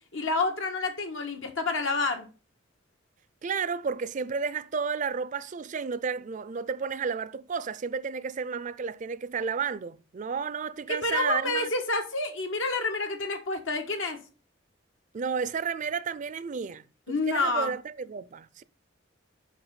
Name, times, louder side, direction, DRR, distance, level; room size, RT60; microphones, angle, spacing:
voice 1, 0.1-2.3 10.9-14.2 17.1-17.7, left 3 dB, 80° left, 1.6 m, -28 dB
voice 2, 3.4-11.7 15.1-18.6, right 6 dB, 40° right, 0.4 m, -32 dB
5.9 x 5.8 x 5.6 m
head